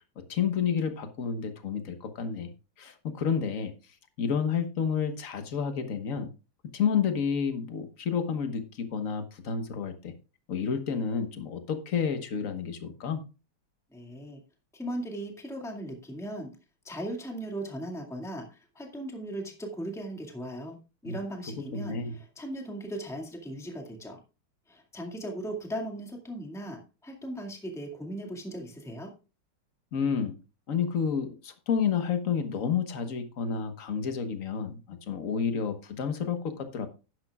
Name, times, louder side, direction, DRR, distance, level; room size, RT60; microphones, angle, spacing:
voice 1, 0.2-2.5 2.8-3.7 4.2-6.3 6.7-10.1 10.5-13.2 21.0-21.2 21.7-22.2 29.9-30.3 30.7-36.9, left 6 dB, 45° left, 8 dB, 1.4 m, -30 dB
voice 2, 13.9-14.4 14.7-16.5 16.8-20.8 21.0-24.2 24.7-29.1, right 1 dB, ahead, 1 dB, 1.9 m, -38 dB
11.5 x 10.5 x 2.4 m, 0.31 s
omnidirectional pair, 2.3 m